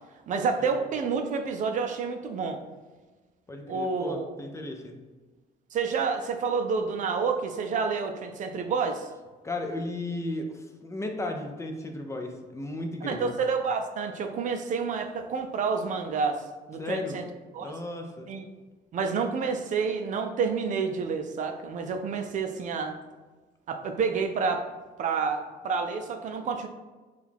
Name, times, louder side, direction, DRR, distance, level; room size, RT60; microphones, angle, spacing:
voice 1, 0.3-2.6 3.7-4.3 5.7-9.1 13.0-16.4 16.7-17.3 17.5-17.7 18.3-18.4 18.9-22.9 23.7-24.7 25.0-26.7, right 5 dB, 50° right, 5 dB, 0.4 m, -29 dB
voice 2, 3.5-4.9 9.4-13.3 16.8-17.2 17.6-18.3, left 2 dB, 15° left, 4 dB, 0.5 m, -34 dB
4.5 x 2.4 x 3.4 m, 1.3 s
cardioid pair, 110°, 17 cm